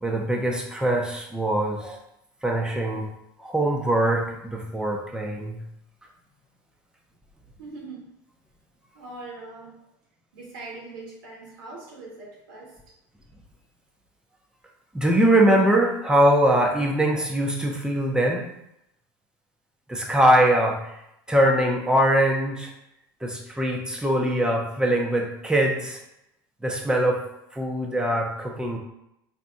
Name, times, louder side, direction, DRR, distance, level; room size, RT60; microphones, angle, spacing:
voice 1, 0.0-2.0 2.4-3.1 3.4-5.6 14.9-18.5 19.9-21.0 21.3-22.7 23.2-26.0 26.6-27.2 27.5-28.8, right 1 dB, 5° right, 0 dB, 1.0 m, -22 dB
voice 2, 7.6-8.1 8.9-9.8 10.3-12.9, right 3 dB, 80° right, -4 dB, 1.4 m, -41 dB
4.0 x 2.9 x 3.6 m, 0.82 s
hypercardioid pair, 85°, 11 cm